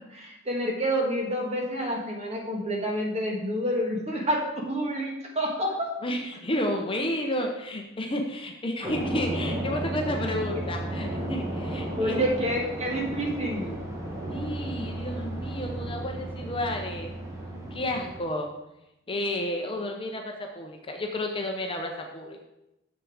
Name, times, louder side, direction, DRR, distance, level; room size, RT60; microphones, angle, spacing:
voice 1, 0.1-5.9 12.0-13.8, equal, 30° right, 0 dB, 1.8 m, -28 dB
voice 2, 6.0-12.5 14.3-17.1 17.7-18.5 19.1-22.4, left 1 dB, 25° left, 2 dB, 0.8 m, -31 dB
sound 1, 8.8-18.2, right 1 dB, 15° right, 1.5 m, -33 dB
7.2 x 6.7 x 4.9 m, 0.90 s
head